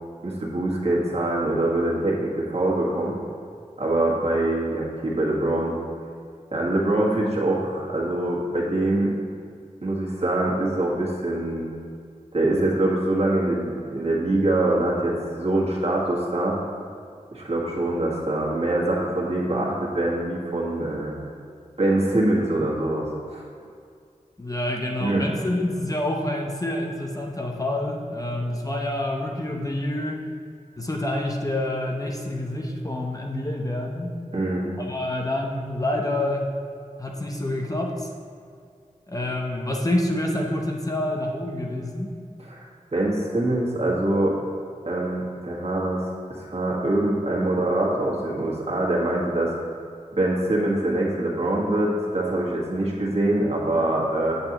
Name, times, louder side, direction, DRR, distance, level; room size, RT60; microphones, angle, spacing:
voice 1, 0.2-3.1 3.8-5.8 6.5-9.1 9.8-11.7 12.3-16.6 17.3-21.2 21.8-23.5 25.0-25.2 34.3-34.8 42.4-42.7 42.9-44.3 44.8-49.5 50.1-54.4, right 1 dB, 50° right, -4 dB, 1.5 m, -24 dB
voice 2, 24.4-30.3 30.8-34.1 34.8-36.5 37.0-38.1 39.1-42.1, left 1 dB, 25° left, 0 dB, 0.7 m, -27 dB
7.9 x 7.9 x 3.0 m, 2.2 s
wide cardioid pair, 70°, 14 cm